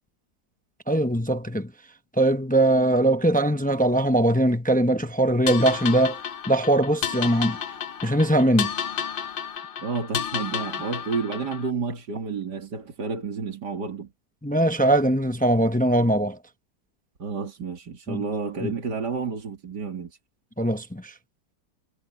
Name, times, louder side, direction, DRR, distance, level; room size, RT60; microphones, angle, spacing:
voice 1, 0.9-1.7 2.2-6.2 6.5-7.6 8.0-8.7 14.4-16.4 18.1-18.2 18.6-18.7 20.6-21.1, right 1 dB, 10° left, 0.4 m, -21 dB
sound 1, 5.5-11.7, left 8 dB, 70° left, 0.5 m, -31 dB
voice 2, 9.8-14.1 17.2-20.2, right 5 dB, 75° right, 3.1 m, -30 dB
omnidirectional pair, 1.9 m